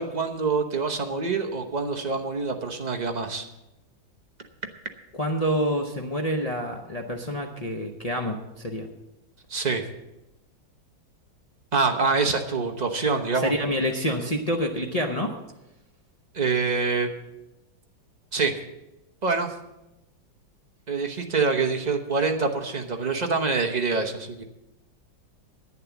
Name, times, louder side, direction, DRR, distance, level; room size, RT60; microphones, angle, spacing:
voice 1, 0.0-3.4 9.5-9.8 11.7-13.5 16.3-17.1 18.3-18.5 19.2-19.5 20.9-24.4, right 4 dB, 40° right, 4 dB, 0.6 m, -25 dB
voice 2, 5.2-8.9 13.3-15.3, equal, 55° left, 1 dB, 0.4 m, -27 dB
11.0 x 9.3 x 7.1 m, 0.92 s
omnidirectional pair, 2.2 m